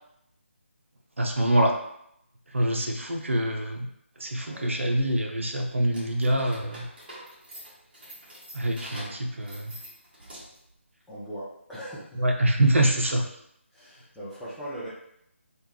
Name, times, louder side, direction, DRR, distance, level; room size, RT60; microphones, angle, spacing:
voice 1, 1.2-1.7 2.5-3.9 4.2-6.9 8.5-9.7 12.1-13.2, right 1 dB, 70° right, 3 dB, 0.6 m, -25 dB
sound 1, 5.9-10.7, equal, 45° right, 1.3 m, -45 dB
voice 2, 11.1-12.2 13.7-14.9, right 1 dB, ahead, -12 dB, 0.5 m, -39 dB
3.3 x 2.2 x 2.9 m, 0.76 s
figure-of-eight pair, 155°, 7 cm